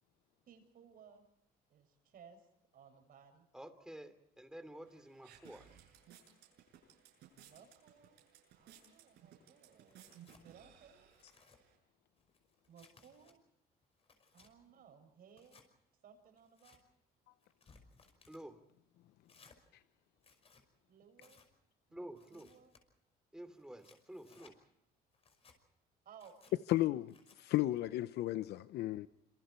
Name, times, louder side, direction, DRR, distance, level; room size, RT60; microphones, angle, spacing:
voice 1, 0.5-1.3 1.7-2.5 2.7-3.5 7.4-8.2 8.5-10.1 10.4-11.2 12.7-13.4 14.3-15.6 16.0-16.8 20.9-21.4 21.9-22.7 26.1-26.6, right 7 dB, 60° right, 6.8 m, -60 dB
voice 2, 3.5-5.7 18.3-18.6 21.9-22.5 23.3-24.6, right 1 dB, 5° right, 2.9 m, -50 dB
sound 1, 4.9-11.8, right 9 dB, 80° right, 7.6 m, -61 dB
Tearing, 9.9-10.5 11.0-11.6 12.2-13.3 13.8-14.5 15.3-15.7 16.4-16.8 17.4-18.4 19.3-19.6 20.2-20.6 21.2-21.5 22.2-22.8 23.5-24.6 25.1-25.6 26.1-26.5 27.1-27.4, left 4 dB, 35° left, 5.6 m, -65 dB
voice 3, 26.7-29.1, left 15 dB, 75° left, 0.8 m, -34 dB
27.0 x 27.0 x 4.4 m
cardioid pair, 110°, 17 cm